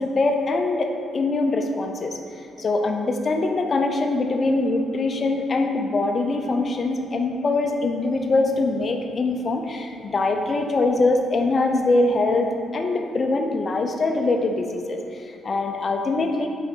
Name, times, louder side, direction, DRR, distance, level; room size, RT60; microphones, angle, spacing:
voice 1, 0.0-2.2 2.6-16.5, left 2 dB, 40° left, 4 dB, 0.7 m, -23 dB
6.3 x 4.9 x 4.5 m, 2.4 s
cardioid pair, 90°, 0 cm